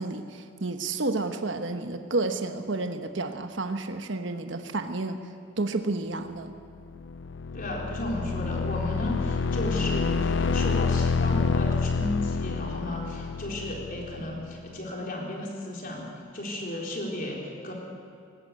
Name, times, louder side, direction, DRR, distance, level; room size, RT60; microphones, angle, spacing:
voice 1, 0.0-5.2 5.6-6.5, right 2 dB, 60° right, 7 dB, 1.1 m, -30 dB
sound 1, 6.8-14.6, left 4 dB, 60° left, 0.5 m, -28 dB
voice 2, 7.5-16.1 16.3-17.7, left 1 dB, 45° left, -1 dB, 4.0 m, -34 dB
19.5 x 18.5 x 8.3 m, 2.4 s
head